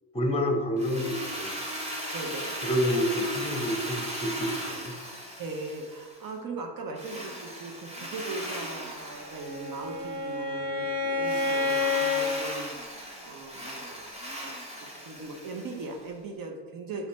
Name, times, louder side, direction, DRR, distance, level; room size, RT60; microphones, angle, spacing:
voice 1, 0.1-1.6 2.6-4.9, equal, 10° left, 3 dB, 0.9 m, -28 dB
Drill, 0.8-6.3 7.0-10.3 11.2-16.0, equal, 15° right, 1.5 m, -38 dB
voice 2, 2.1-2.5 5.4-14.1 14.4-17.1, right 3 dB, 45° right, 2 dB, 0.7 m, -39 dB
Bowed string instrument, 9.1-12.3, left 3 dB, 85° right, 1.0 m, -29 dB
4.1 x 2.8 x 4.2 m, 1.4 s
hypercardioid pair, 55°, 47 cm